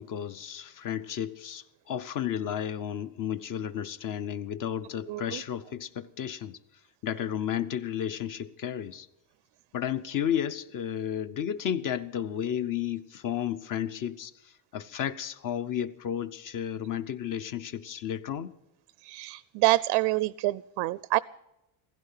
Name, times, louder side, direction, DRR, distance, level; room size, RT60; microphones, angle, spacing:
voice 1, 0.0-6.6 7.0-9.1 9.7-14.3 14.7-18.5, left 9 dB, 40° left, 0.7 m, -32 dB
voice 2, 5.1-5.4 19.0-21.2, right 19 dB, 65° right, 0.5 m, -27 dB
16.0 x 15.5 x 5.7 m
cardioid pair, 165°, 47 cm